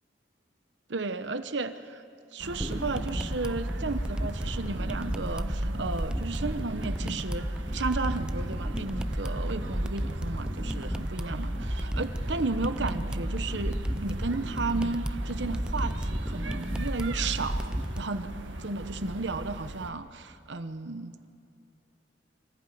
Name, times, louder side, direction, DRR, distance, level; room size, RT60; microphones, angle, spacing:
voice 1, 0.9-2.0 2.3-7.5 7.7-18.3 18.6-21.3, right 3 dB, 70° right, 10 dB, 1.0 m, -34 dB
sound 1, 2.4-19.9, right 1 dB, 90° right, 1.7 m, -39 dB
sound 2, 2.6-18.0, equal, 5° right, 0.5 m, -33 dB
25.5 x 15.0 x 9.4 m, 2.6 s
head